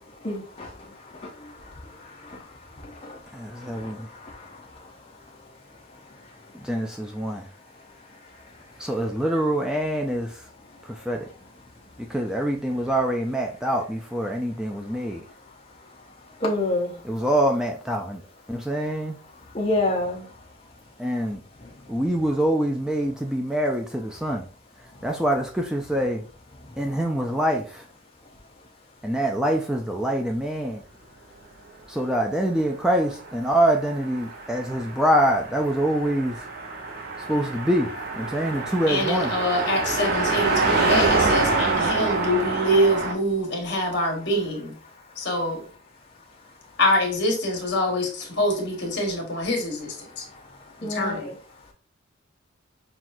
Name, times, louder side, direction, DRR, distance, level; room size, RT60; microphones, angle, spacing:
voice 1, 3.3-4.1 6.6-7.5 8.8-10.3 10.9-11.2 12.1-15.2 17.0-18.2 18.5-19.2 21.0-21.4 21.9-24.5 25.0-26.2 26.8-27.8 29.0-30.8 31.9-36.4 37.3-37.9 38.2-39.3, right 1 dB, 5° right, 0.3 m, -25 dB
voice 2, 16.4-16.9 19.5-20.2 50.8-51.2, left 2 dB, 30° left, 0.7 m, -24 dB
Car passing by, 33.0-43.1, right 3 dB, 50° right, 0.7 m, -26 dB
voice 3, 38.9-44.7 45.2-45.6 46.8-50.2 50.9-51.3, equal, 60° left, 1.3 m, -25 dB
5.8 x 2.3 x 2.5 m
head